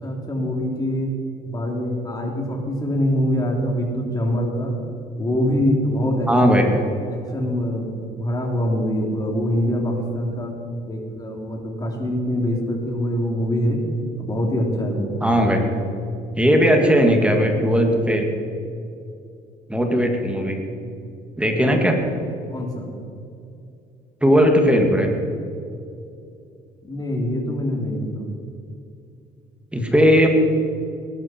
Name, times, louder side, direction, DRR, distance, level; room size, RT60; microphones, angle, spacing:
voice 1, 0.0-1.1 1.5-4.7 5.2-6.6 7.1-10.5 10.8-13.8 14.2-16.0 21.7-21.8 22.5-22.9 26.8-28.3, equal, 20° left, 0 dB, 3.3 m, -24 dB
voice 2, 6.3-6.6 15.2-15.6 16.4-18.3 19.7-20.6 21.4-22.0 24.2-25.1 29.7-30.3, equal, 5° right, 2 dB, 2.1 m, -17 dB
19.0 x 12.5 x 4.5 m, 2.5 s
cardioid pair, 110°, 17 cm